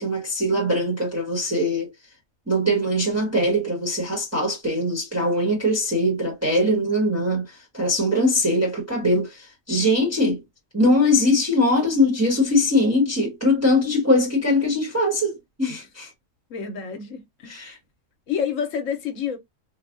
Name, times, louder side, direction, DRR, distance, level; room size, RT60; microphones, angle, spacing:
voice 1, 0.0-1.9 2.5-10.4 10.7-16.1 17.5-17.7, left 1 dB, 10° right, 1.2 m, -21 dB
voice 2, 16.5-17.7 18.3-19.4, left 7 dB, 70° left, 1.2 m, -29 dB
4.0 x 2.3 x 2.5 m
omnidirectional pair, 1.4 m